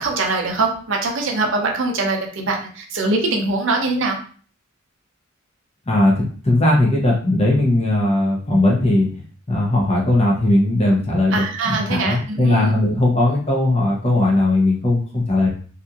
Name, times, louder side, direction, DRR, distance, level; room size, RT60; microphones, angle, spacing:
voice 1, 0.0-4.2 11.3-12.7, right 3 dB, 65° right, 1 dB, 0.6 m, -22 dB
voice 2, 5.9-9.2 9.5-15.5, left 1 dB, 30° left, -2 dB, 0.7 m, -18 dB
2.8 x 2.5 x 2.4 m, 0.43 s
head